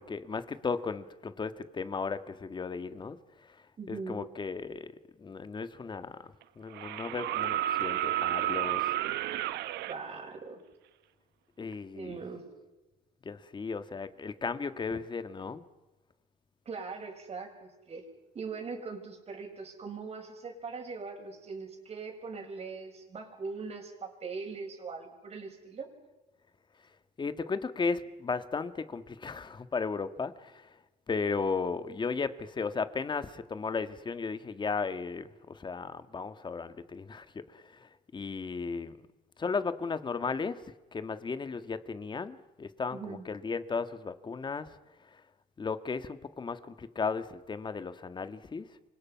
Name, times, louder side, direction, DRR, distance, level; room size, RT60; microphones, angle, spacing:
voice 1, 0.0-4.9 5.2-6.3 6.6-8.9 11.6-12.2 13.3-15.6 27.2-30.7 31.1-39.0 39.4-44.8 45.1-45.2 45.6-48.7, left 4 dB, 25° left, 11 dB, 1.7 m, -35 dB
voice 2, 3.8-4.2 9.9-10.6 11.9-12.5 16.7-18.1 18.3-25.9 42.9-43.2, right 4 dB, 40° right, 2 dB, 7.0 m, -41 dB
sound 1, 5.6-5.7 6.7-10.0 11.7-11.8, right 13 dB, 80° right, 1.1 m, -31 dB
28.5 x 25.5 x 5.8 m, 1.1 s
cardioid pair, 110°, 17 cm